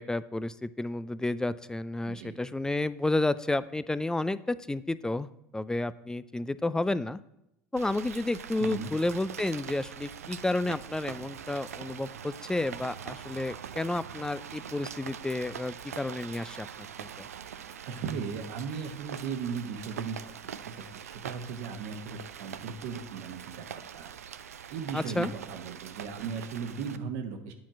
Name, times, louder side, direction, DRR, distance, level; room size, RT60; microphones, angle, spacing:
voice 1, 0.0-7.2 7.7-16.7 17.0-17.3 24.9-25.3, left 2 dB, 10° left, 16 dB, 0.4 m, -31 dB
voice 2, 2.0-2.4 8.6-8.9 17.8-20.2 20.4-23.7 23.9-24.1 24.4-27.5, right 6 dB, 65° right, 6 dB, 1.1 m, -37 dB
Rain, 7.8-27.0, right 8 dB, 85° right, 0.4 m, -43 dB
9.2 x 4.3 x 6.1 m, 0.82 s
hypercardioid pair, 70°, 8 cm